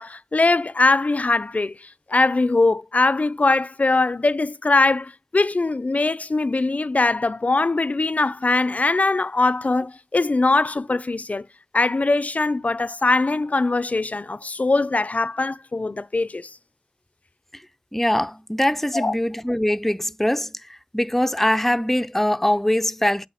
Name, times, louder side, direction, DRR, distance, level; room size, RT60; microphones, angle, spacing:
voice 1, 0.0-11.4 11.7-16.5 18.9-19.1, left 3 dB, 60° left, 0.5 m, -21 dB
voice 2, 17.9-23.3, left 1 dB, 10° left, 0.5 m, -22 dB
8.5 x 3.9 x 6.4 m
wide cardioid pair, 45°, 3 cm